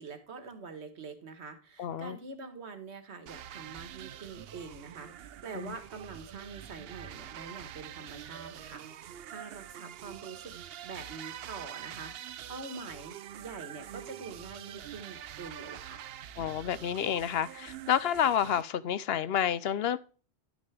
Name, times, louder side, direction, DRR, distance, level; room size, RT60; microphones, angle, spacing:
voice 1, 0.0-10.5 10.8-16.0, right 4 dB, 85° right, 1.7 m, -45 dB
voice 2, 1.8-2.2 5.5-5.7 16.4-20.0, left 9 dB, 70° left, 0.8 m, -29 dB
sound 1, 3.3-18.6, right 11 dB, 70° right, 0.7 m, -45 dB
11.0 x 6.2 x 3.3 m
omnidirectional pair, 1.1 m